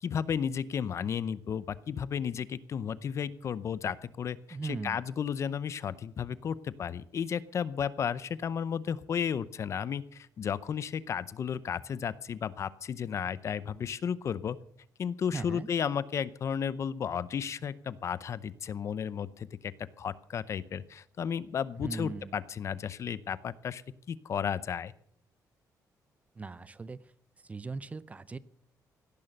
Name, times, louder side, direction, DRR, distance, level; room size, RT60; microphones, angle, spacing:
voice 1, 0.0-14.6 15.0-23.8 24.1-24.9, left 7 dB, 45° left, 17 dB, 0.7 m, -33 dB
voice 2, 4.5-5.0 15.3-15.7 21.8-22.3 26.4-27.1 27.4-28.4, right 4 dB, 20° right, 17 dB, 0.5 m, -39 dB
17.0 x 11.0 x 6.6 m, 0.65 s
cardioid pair, 140°, 7 cm